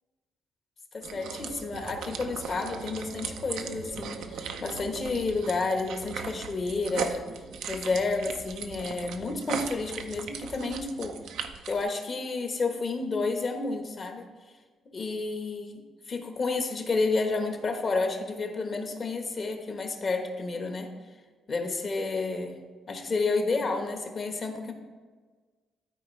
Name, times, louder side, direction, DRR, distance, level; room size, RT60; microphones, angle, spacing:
voice 1, 0.9-7.3 7.6-11.2 11.7-14.3 14.8-20.9 21.5-22.6 22.9-24.7, left 3 dB, 45° left, 4 dB, 1.2 m, -30 dB
sound 1, 1.0-11.8, right 6 dB, 80° right, 0.6 m, -38 dB
12.5 x 4.5 x 3.2 m, 1.4 s
cardioid pair, 90°, 0 cm